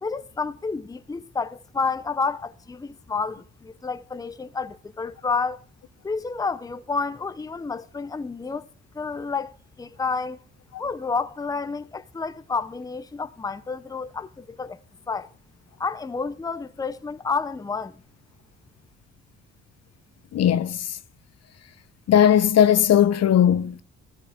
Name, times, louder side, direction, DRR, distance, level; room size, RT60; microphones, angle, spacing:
voice 1, 0.0-5.6 6.0-8.7 8.9-10.4 10.8-14.8 15.1-15.3 15.8-17.9, left 4 dB, 10° left, 0.6 m, -30 dB
voice 2, 20.3-20.9 22.1-23.8, left 10 dB, 55° left, 0.7 m, -18 dB
14.5 x 14.0 x 3.6 m
cardioid pair, 90°, 30 cm